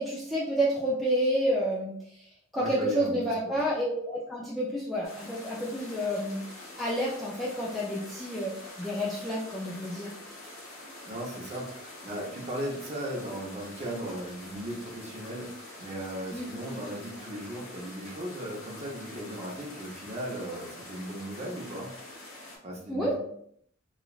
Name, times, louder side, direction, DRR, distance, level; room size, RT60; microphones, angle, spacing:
voice 1, 0.0-6.4 6.8-10.1 16.3-16.5 22.9-23.1, equal, ahead, -6 dB, 0.4 m, -30 dB
voice 2, 2.6-3.6 11.1-21.9 22.6-23.1, right 1 dB, 35° right, -3 dB, 0.7 m, -37 dB
sound 1, 5.0-22.6, left 1 dB, 80° left, 1.1 m, -46 dB
3.0 x 2.4 x 2.4 m, 0.67 s
head